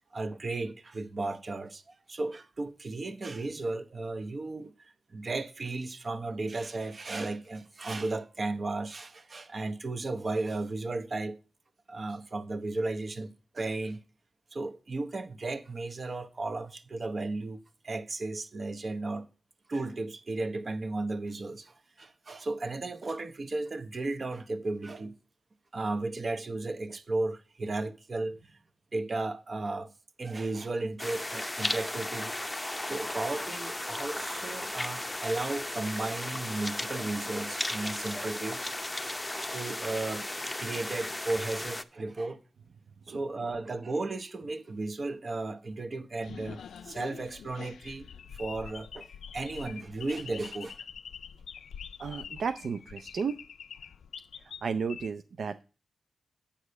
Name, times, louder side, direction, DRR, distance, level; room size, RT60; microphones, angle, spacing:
voice 1, 0.1-11.4 11.9-14.0 14.5-17.6 17.8-19.3 19.7-25.1 25.7-28.6 28.9-29.9 30.2-32.4 32.9-38.7 39.5-42.4 43.1-48.1 48.3-50.8, right 2 dB, 45° right, 0.9 m, -35 dB
sound 1, 31.0-41.8, left 1 dB, 15° left, 0.6 m, -35 dB
sound 2, 46.2-55.1, left 7 dB, 90° left, 0.4 m, -45 dB
voice 2, 52.0-53.4 54.4-55.6, right 5 dB, 70° right, 0.4 m, -33 dB
8.6 x 4.8 x 6.6 m
cardioid pair, 75°, 0 cm